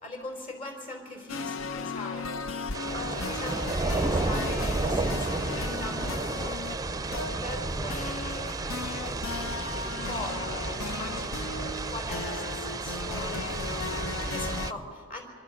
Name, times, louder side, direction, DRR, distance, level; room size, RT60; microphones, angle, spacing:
voice 1, 0.0-2.4 2.8-6.3 6.9-8.5 8.9-11.5 11.9-15.3, left 1 dB, 45° left, 3 dB, 4.0 m, -41 dB
sound 1, 1.3-14.7, left 4 dB, 80° left, 0.7 m, -36 dB
sound 2, 2.7-14.7, right 3 dB, 20° right, 0.5 m, -32 dB
25.0 x 25.0 x 6.4 m, 2.4 s
head